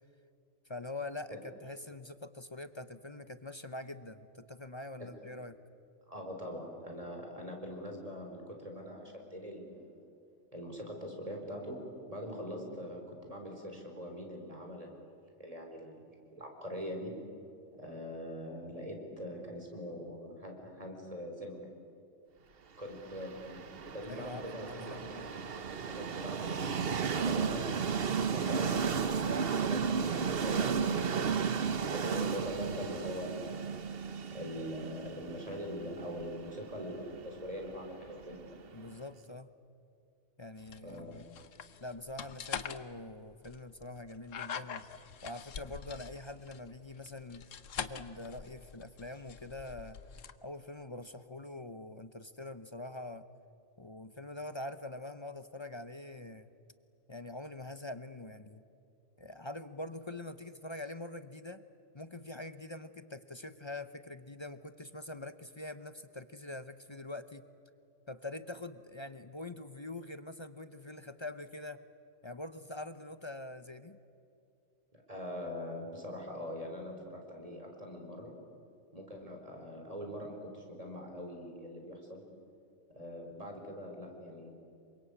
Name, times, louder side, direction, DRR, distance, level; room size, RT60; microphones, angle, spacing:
voice 1, 0.7-5.6 24.1-25.3 38.7-39.5 40.4-41.3 41.8-44.9 45.2-47.4 47.8-50.0 50.4-53.2 53.8-56.5 57.1-58.6 59.2-61.6 61.9-67.4 68.1-71.8 72.2-74.0, left 2 dB, 25° left, 11 dB, 0.8 m, -44 dB
voice 2, 6.1-10.1 10.5-11.8 12.1-15.1 15.4-17.1 17.7-21.6 22.8-27.7 28.3-33.7 34.3-38.6 40.8-41.2 74.9-78.3 78.9-82.2 82.9-84.5, equal, 30° right, 2 dB, 4.7 m, -43 dB
Train, 23.0-38.9, right 6 dB, 50° right, 1.1 m, -34 dB
sound 1, 40.6-50.3, left 7 dB, 75° left, 1.4 m, -44 dB
27.5 x 24.5 x 8.5 m, 2.5 s
omnidirectional pair, 1.3 m